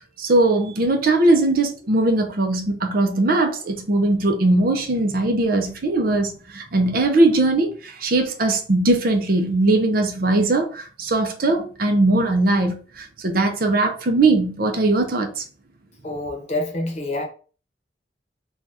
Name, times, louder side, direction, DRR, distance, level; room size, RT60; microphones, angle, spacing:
voice 1, 0.2-15.4, right 2 dB, 55° right, 0.5 m, -20 dB
voice 2, 16.0-17.2, left 1 dB, 40° left, 0.9 m, -27 dB
2.7 x 2.3 x 3.4 m
head